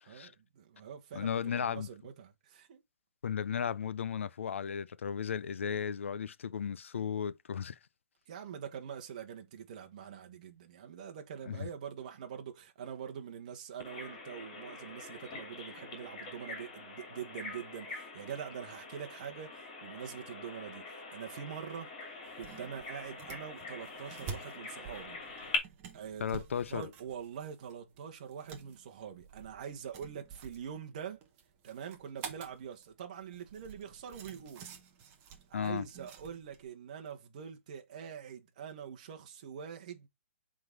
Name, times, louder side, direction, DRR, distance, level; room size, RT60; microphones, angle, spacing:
voice 1, 0.1-2.8 8.3-26.4 26.7-31.2 31.6-34.7 35.5-40.1, right 8 dB, 35° right, 1.3 m, -44 dB
voice 2, 1.1-1.9 3.2-7.8 11.5-11.7 26.2-26.9 35.5-35.8, left 7 dB, 70° left, 0.6 m, -35 dB
Bird vocalization bird call bird song, 13.8-25.6, left 3 dB, 30° left, 2.6 m, -44 dB
sound 1, 22.2-36.6, right 6 dB, 20° right, 1.0 m, -50 dB
7.7 x 3.8 x 3.9 m
hypercardioid pair, 175°, 7 cm